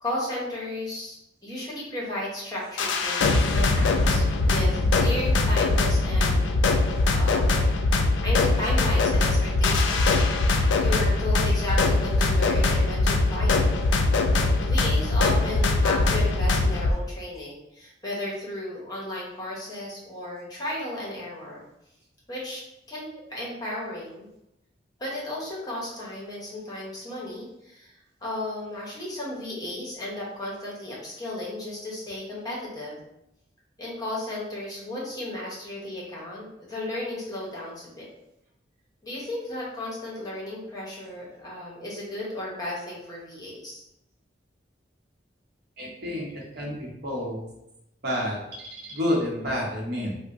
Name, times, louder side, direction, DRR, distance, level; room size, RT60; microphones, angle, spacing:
voice 1, 0.0-6.5 6.9-7.8 8.2-13.7 14.6-21.6 22.3-22.6 22.9-24.3 25.0-27.9 28.2-33.0 33.8-38.1 39.0-43.8, left 1 dB, 20° left, -5 dB, 0.9 m, -34 dB
sound 1, 2.8-16.9, left 2 dB, 85° left, 0.4 m, -22 dB
voice 2, 45.8-47.4 48.0-50.2, left 1 dB, 60° right, -3 dB, 0.9 m, -29 dB
2.7 x 2.1 x 3.6 m, 0.84 s
head